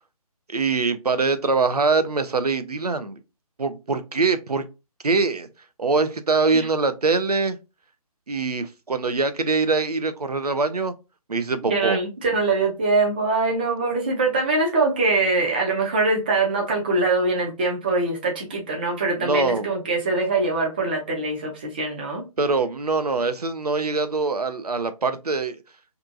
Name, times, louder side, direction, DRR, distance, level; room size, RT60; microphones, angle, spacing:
voice 1, 0.5-3.2 3.6-4.6 5.0-5.5 5.8-7.6 8.3-10.9 11.3-12.0 19.2-19.7 22.4-25.6, right 4 dB, 90° right, 0.5 m, -23 dB
voice 2, 11.6-22.2, right 3 dB, 15° right, 0.4 m, -23 dB
2.7 x 2.4 x 2.5 m
figure-of-eight pair, 145°, 19 cm